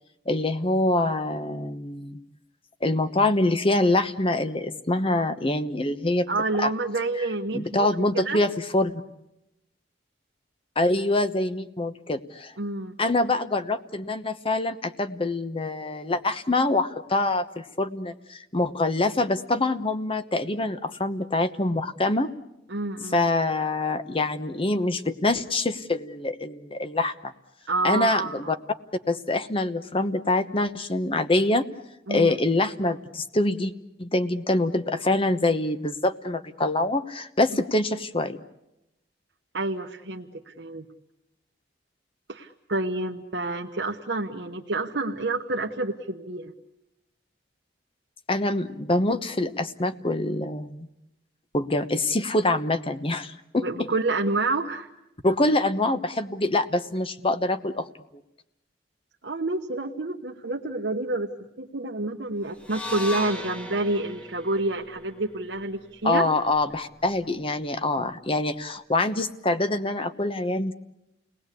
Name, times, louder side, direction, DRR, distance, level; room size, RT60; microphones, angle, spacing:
voice 1, 0.3-2.2 2.8-6.3 6.6-6.7 7.5-9.0 10.8-12.5 13.0-22.3 23.1-27.3 27.8-28.6 29.1-31.6 32.1-33.7 34.0-38.4 48.3-50.9 51.5-53.9 55.2-57.9 66.0-70.7, left 2 dB, 30° left, 10 dB, 1.0 m, -25 dB
voice 2, 6.3-7.9 8.1-8.4 12.6-12.9 22.7-23.2 27.7-28.6 32.1-32.3 39.5-40.8 42.3-46.5 53.6-54.9 59.2-66.3 66.6-66.7 68.0-68.1, right 2 dB, 75° right, 1 dB, 1.2 m, -28 dB
sound 1, 62.6-66.8, left 2 dB, 10° left, 1.7 m, -38 dB
29.0 x 19.5 x 8.4 m, 0.91 s
head